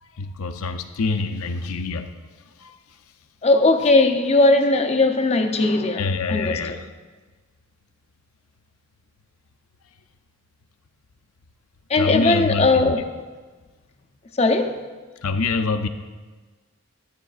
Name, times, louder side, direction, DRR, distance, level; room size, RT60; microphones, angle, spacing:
voice 1, 0.0-2.1 2.6-2.8 6.0-6.9 11.9-12.9 15.2-15.9, left 4 dB, 75° left, 0.5 m, -25 dB
voice 2, 3.4-6.0 6.3-6.8 11.9-13.0 14.4-14.8, left 2 dB, 30° left, 0.6 m, -18 dB
12.5 x 9.0 x 2.4 m
head